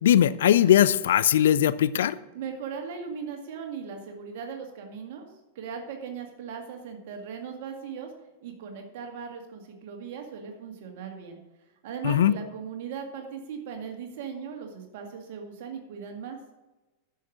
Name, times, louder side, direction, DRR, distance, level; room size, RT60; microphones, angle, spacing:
voice 1, 0.0-2.2 12.0-12.3, left 10 dB, 60° left, 16 dB, 0.4 m, -20 dB
voice 2, 2.3-5.3 5.6-8.1 8.4-11.4 11.8-16.4, right 6 dB, 50° right, 3 dB, 2.0 m, -38 dB
10.5 x 6.6 x 6.0 m, 1.1 s
figure-of-eight pair, 90°, 0 cm